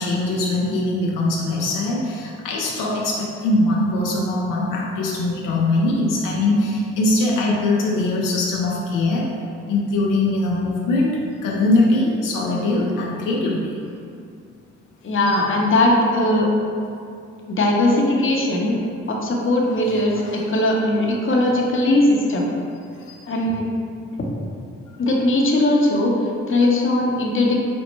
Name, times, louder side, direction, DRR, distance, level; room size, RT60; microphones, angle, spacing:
voice 1, 0.0-9.3 9.7-13.7 15.3-15.4 23.0-23.2, left 2 dB, 85° left, -3 dB, 0.5 m, -21 dB
voice 2, 15.0-16.5 17.5-18.8 19.1-22.5 23.3-23.7 24.2-24.3 25.0-27.6, left 1 dB, 40° left, -1 dB, 0.7 m, -19 dB
5.2 x 2.1 x 3.0 m, 2.4 s
supercardioid pair, 55°, 31 cm